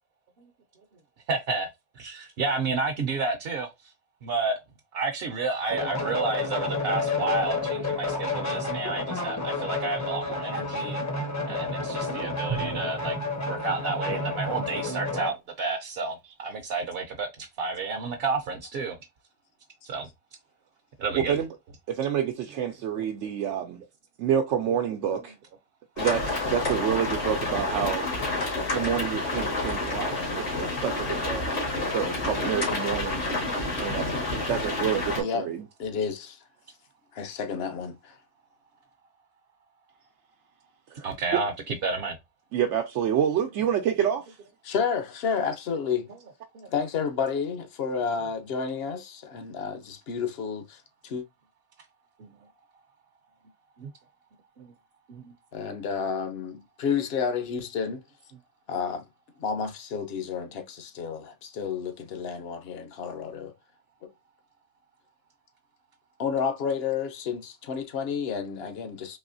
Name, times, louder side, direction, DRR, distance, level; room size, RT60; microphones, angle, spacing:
voice 1, 1.3-1.7 2.0-3.7 4.2-4.6 4.9-11.0 11.4-13.2 13.5-19.0 19.8-20.1 21.0-21.4 23.0-23.3 25.1-25.2 41.0-42.2 46.5-46.7 52.2-52.3 53.8-53.9 54.6-54.7 55.1-55.3, right 3 dB, 60° right, 0.8 m, -31 dB
sound 1, 5.7-15.3, left 3 dB, 20° left, 0.5 m, -30 dB
Drum, 12.5-14.9, right 8 dB, 40° right, 0.4 m, -39 dB
voice 2, 21.1-21.5 21.9-23.8 24.2-25.3 26.0-28.1 28.7-33.2 33.8-35.7 41.0-41.1 41.3-41.4 42.5-44.4, right 9 dB, 85° right, 0.9 m, -28 dB
sound 2, 26.0-35.2, left 2 dB, 80° left, 2.1 m, -29 dB
voice 3, 35.2-35.5 35.8-36.4 37.1-38.1 44.6-46.1 46.7-51.2 55.5-58.0 58.7-59.1 59.4-63.5 66.2-69.2, left 6 dB, 60° left, 0.9 m, -30 dB
4.1 x 3.0 x 2.5 m
omnidirectional pair, 1.2 m